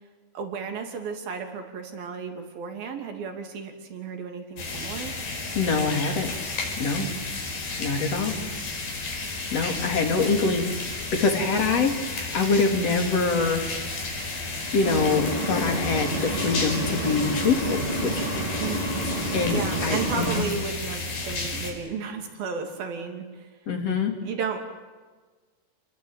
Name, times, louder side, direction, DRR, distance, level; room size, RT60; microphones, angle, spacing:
voice 1, 0.3-5.1 7.0-7.2 8.3-8.5 10.2-10.4 11.8-11.9 18.6-18.9 19.5-23.5 24.2-24.6, right 5 dB, 75° right, 4 dB, 4.7 m, -34 dB
sound 1, 4.6-21.7, left 3 dB, 80° left, 6.9 m, -32 dB
voice 2, 5.6-6.3 6.8-7.0 7.8-8.4 9.5-10.6 11.1-13.6 14.7-18.5 19.3-20.5 23.7-24.1, left 4 dB, 45° left, 4 dB, 3.8 m, -25 dB
sound 2, 14.8-20.4, right 1 dB, 40° right, 4.0 m, -29 dB
28.5 x 21.0 x 9.0 m, 1.4 s
omnidirectional pair, 4.2 m